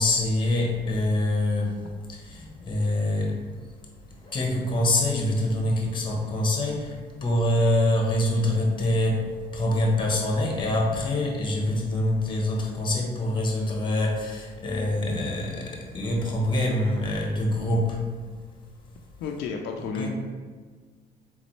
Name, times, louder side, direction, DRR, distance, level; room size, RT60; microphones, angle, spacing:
voice 1, 0.0-1.7 2.1-3.4 4.2-18.0 19.9-20.1, left 1 dB, 30° left, -1 dB, 1.0 m, -25 dB
voice 2, 19.2-20.1, left 5 dB, 80° left, 2 dB, 0.4 m, -31 dB
3.9 x 3.7 x 3.2 m, 1.6 s
cardioid pair, 110°, 17 cm